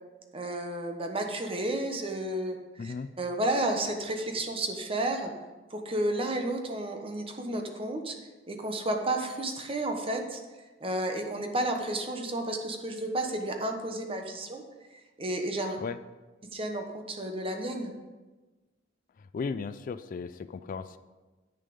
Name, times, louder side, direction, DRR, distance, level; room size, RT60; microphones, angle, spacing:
voice 1, 0.3-5.3 5.7-8.2 8.5-10.4 10.8-14.6 15.2-15.8 16.5-17.9, right 1 dB, 30° right, 4 dB, 1.1 m, -32 dB
voice 2, 2.8-3.1 15.8-16.0 19.3-21.0, left 5 dB, 45° left, 13 dB, 0.3 m, -35 dB
8.3 x 6.7 x 5.3 m, 1.2 s
head